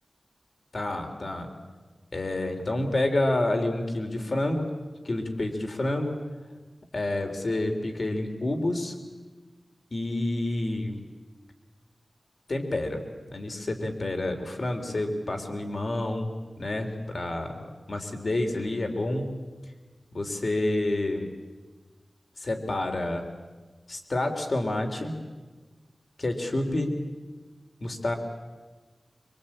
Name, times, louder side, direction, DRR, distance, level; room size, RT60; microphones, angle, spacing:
voice 1, 0.7-1.5 2.1-4.7 5.0-6.1 6.9-8.9 9.9-11.0 12.5-13.0 13.3-16.3 16.6-19.3 20.1-21.3 22.4-23.2 23.9-25.2 26.2-26.9 27.8-28.1, left 1 dB, 60° left, 4 dB, 3.6 m, -28 dB
26.0 x 24.5 x 8.8 m, 1.3 s
wide cardioid pair, 80°, 0 cm